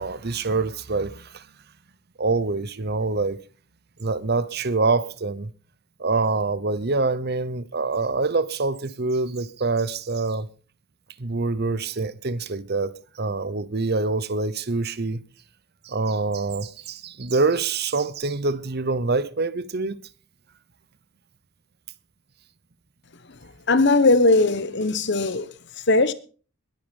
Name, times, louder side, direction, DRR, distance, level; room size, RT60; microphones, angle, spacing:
voice 1, 0.0-1.4 2.2-3.4 4.0-5.5 6.0-10.5 11.2-15.2 15.8-20.0, right 3 dB, 50° right, 0.9 m, -25 dB
voice 2, 23.7-25.5 25.9-26.1, left 3 dB, 55° left, 1.2 m, -19 dB
21.0 x 8.8 x 5.4 m
head